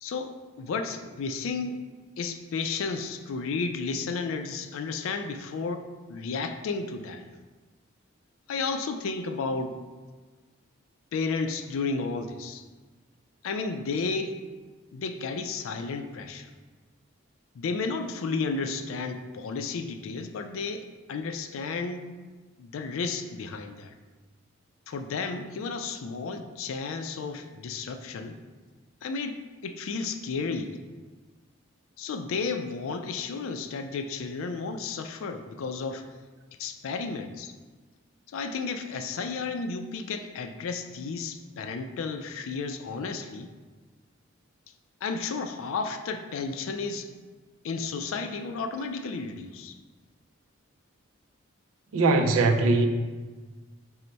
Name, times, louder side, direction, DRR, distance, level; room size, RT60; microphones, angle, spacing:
voice 1, 0.0-1.8 2.2-7.3 8.5-9.8 11.1-12.6 13.4-14.4 14.9-16.5 17.5-22.1 22.6-23.9 24.9-28.4 29.0-30.8 32.0-36.1 36.6-37.5 38.3-43.5 45.0-47.1 47.6-49.8, left 4 dB, 75° left, 7 dB, 0.3 m, -32 dB
voice 2, 51.9-52.9, right 3 dB, 85° right, 5 dB, 0.4 m, -21 dB
4.4 x 2.1 x 3.9 m, 1.3 s
head